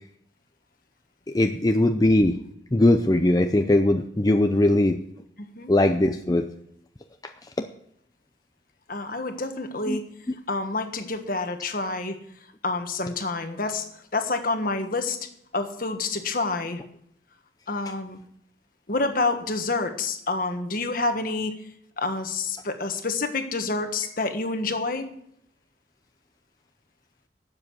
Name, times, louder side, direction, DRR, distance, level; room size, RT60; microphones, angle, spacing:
voice 1, 1.3-2.4 2.7-5.0 5.7-6.5 7.6-7.7 9.9-10.0, left 1 dB, 20° left, 6 dB, 0.6 m, -20 dB
voice 2, 5.4-5.7 8.9-10.0 10.5-12.2 12.6-13.9 14.1-16.8 17.7-18.2 18.9-21.5 22.0-25.1, left 3 dB, 50° left, 7 dB, 1.5 m, -28 dB
12.0 x 7.6 x 7.9 m, 0.71 s
head